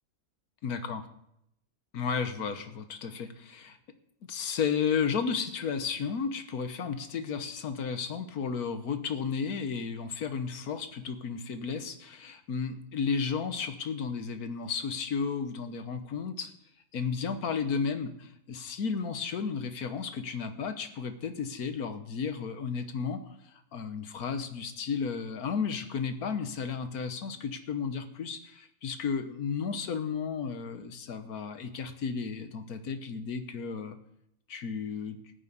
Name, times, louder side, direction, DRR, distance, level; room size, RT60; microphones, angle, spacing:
voice 1, 0.6-1.0 1.9-3.8 4.3-16.5 16.9-34.0 34.5-35.2, left 6 dB, 90° left, 9 dB, 1.6 m, -33 dB
14.0 x 6.3 x 9.4 m, 0.77 s
omnidirectional pair, 1.5 m